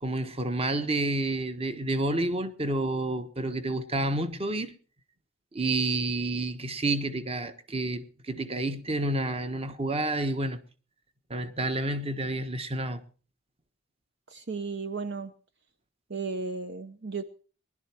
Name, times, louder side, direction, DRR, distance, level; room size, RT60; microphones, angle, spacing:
voice 1, 0.0-4.7 5.5-10.6 11.3-13.0, right 2 dB, 25° right, 1.3 m, -29 dB
voice 2, 14.3-15.3 16.1-17.2, right 4 dB, 50° right, 0.9 m, -34 dB
20.5 x 12.0 x 4.5 m
head